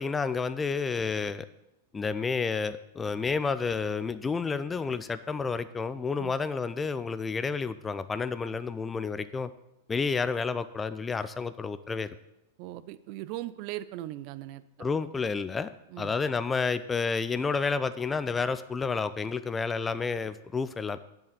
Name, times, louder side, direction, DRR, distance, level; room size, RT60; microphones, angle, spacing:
voice 1, 0.0-1.5 1.9-9.5 9.9-12.1 14.8-15.7 16.0-21.0, left 5 dB, 15° left, 13 dB, 0.5 m, -30 dB
voice 2, 12.6-14.6 15.9-16.1, right 15 dB, 50° right, 15 dB, 0.6 m, -39 dB
7.9 x 7.3 x 7.6 m, 0.86 s
figure-of-eight pair, 95°, 0 cm